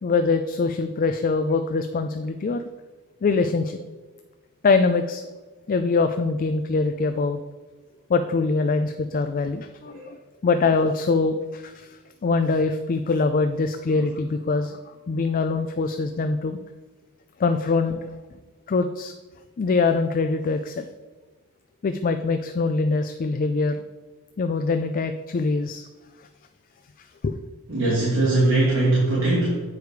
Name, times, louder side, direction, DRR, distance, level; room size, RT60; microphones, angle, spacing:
voice 1, 0.0-2.6 3.2-3.8 4.6-5.2 5.7-7.4 8.1-10.2 10.4-11.9 12.2-16.6 17.4-18.1 18.7-19.1 19.6-20.8 21.8-23.8 24.4-25.9 27.2-27.4, left 4 dB, 40° left, 8 dB, 0.4 m, -23 dB
voice 2, 27.7-29.6, right 2 dB, 65° right, -6 dB, 2.2 m, -21 dB
8.3 x 5.0 x 4.7 m, 1.3 s
head